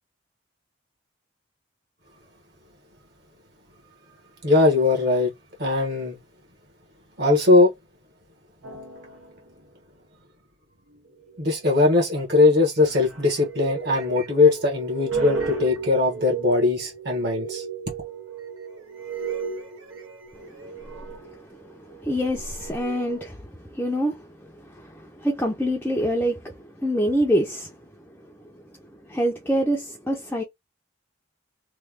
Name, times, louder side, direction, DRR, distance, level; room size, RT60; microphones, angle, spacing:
voice 1, 4.4-5.3 5.6-6.2 7.2-7.7 11.4-17.6, left 3 dB, 55° right, 1.2 m, -20 dB
dnb fx, 8.6-9.4 11.1-12.0 12.8-23.3, right 5 dB, 90° right, 1.0 m, -34 dB
voice 2, 20.3-27.8 28.1-30.4, equal, 10° left, 0.5 m, -27 dB
3.2 x 2.2 x 3.4 m
head